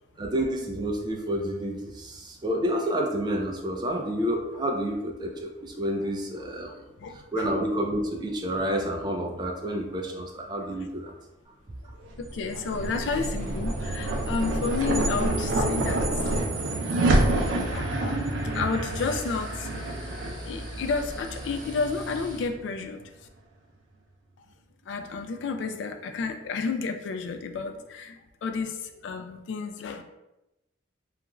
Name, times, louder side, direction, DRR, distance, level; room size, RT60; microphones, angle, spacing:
voice 1, 0.2-6.7 7.3-11.1, equal, 25° right, 2 dB, 0.3 m, -29 dB
voice 2, 6.7-7.5 12.2-16.4 17.0-23.0 24.4-24.5 24.9-30.0, left 4 dB, 75° left, 7 dB, 0.3 m, -32 dB
sound 1, 12.0-22.6, right 2 dB, 90° right, 0.4 m, -28 dB
sound 2, 17.3-22.5, equal, 5° left, 0.7 m, -40 dB
2.4 x 2.3 x 2.9 m, 0.95 s
head